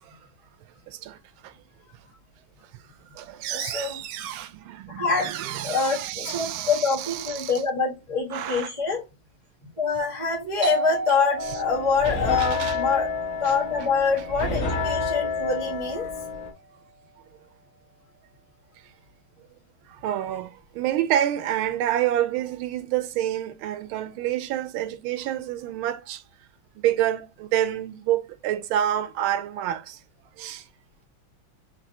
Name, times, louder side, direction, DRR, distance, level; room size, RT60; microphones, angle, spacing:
voice 1, 0.9-1.2 1.4-1.5 3.2-7.5 8.3-8.7 11.5-11.6 12.4-12.8 13.4-13.5 20.0-26.2 26.8-30.0 30.4-30.6, right 12 dB, 85° right, 1.4 m, -28 dB
voice 2, 3.5-4.0 5.0-9.0 9.8-13.1 13.4-16.1, left 5 dB, 15° left, 1.3 m, -25 dB
Doorbell, 10.6-16.0, right 3 dB, 45° right, 0.9 m, -34 dB
sound 1, 11.4-16.5, left 4 dB, 50° left, 1.4 m, -29 dB
5.3 x 2.9 x 2.7 m
omnidirectional pair, 2.3 m